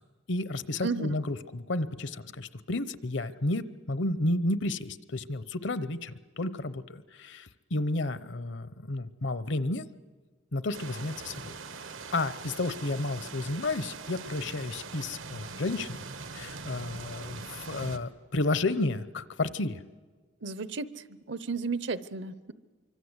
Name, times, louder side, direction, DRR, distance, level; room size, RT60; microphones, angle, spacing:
voice 1, 0.3-9.8 10.5-11.6 12.1-16.0 16.3-19.8, left 2 dB, 65° left, 14 dB, 0.8 m, -32 dB
voice 2, 0.8-1.2 20.4-22.5, right 4 dB, 60° right, 15 dB, 0.8 m, -34 dB
sound 1, 10.7-18.0, right 4 dB, 80° right, 1.3 m, -42 dB
25.5 x 24.5 x 8.1 m, 1.4 s
head